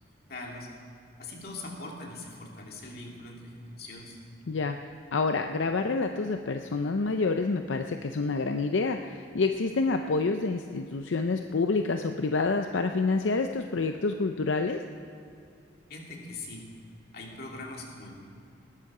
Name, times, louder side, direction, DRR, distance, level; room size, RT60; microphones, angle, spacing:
voice 1, 0.3-0.7 1.2-4.2 15.9-16.7 17.1-18.1, left 2 dB, 55° left, -1 dB, 2.7 m, -41 dB
voice 2, 4.5-4.8 5.1-14.8, left 3 dB, 80° left, 6 dB, 0.6 m, -28 dB
19.0 x 13.5 x 4.9 m, 2.6 s
head